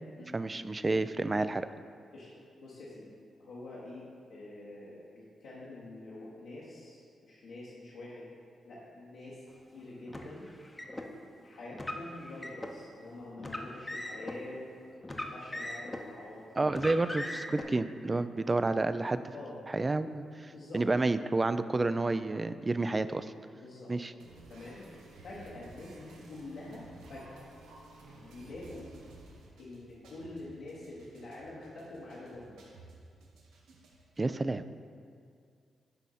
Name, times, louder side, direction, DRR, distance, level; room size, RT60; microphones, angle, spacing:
voice 1, 0.3-1.7 16.6-19.2 19.7-23.3 23.9-24.1 34.2-34.6, right 2 dB, 30° right, 12 dB, 0.3 m, -30 dB
voice 2, 2.6-3.1 3.4-8.3 8.6-9.4 9.7-10.5 11.4-14.8 15.1-17.0 19.3-19.6 20.5-20.8 23.5-23.9 24.5-24.9 25.2-27.5 28.2-28.9 29.6-32.6, left 2 dB, 80° left, -9 dB, 1.1 m, -46 dB
Car, 10.1-11.1 11.7-12.7 13.4-14.4 15.0-16.1 16.7-17.6, left 1 dB, 20° left, 0.7 m, -39 dB
sound 1, 24.2-34.2, right 2 dB, 85° right, 0.8 m, -54 dB
9.7 x 3.5 x 4.1 m, 2.2 s
supercardioid pair, 50°, 0 cm